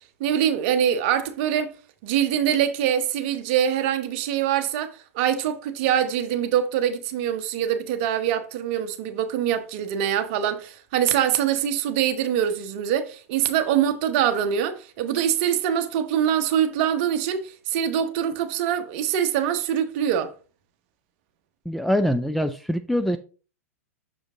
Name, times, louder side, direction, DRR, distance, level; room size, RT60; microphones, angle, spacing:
voice 1, 0.2-1.7 2.0-20.3, right 9 dB, 45° right, 0.9 m, -24 dB
voice 2, 21.7-23.2, equal, ahead, 0.3 m, -24 dB
6.4 x 5.0 x 3.7 m
figure-of-eight pair, 100°, 8 cm